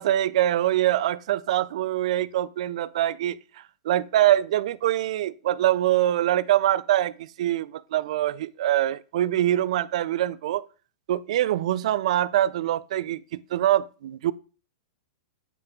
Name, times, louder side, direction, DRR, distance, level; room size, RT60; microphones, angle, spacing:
voice 1, 0.0-10.6 11.1-14.3, right 13 dB, 65° right, 0.3 m, -24 dB
8.2 x 3.2 x 3.5 m
hypercardioid pair, 145°, 4 cm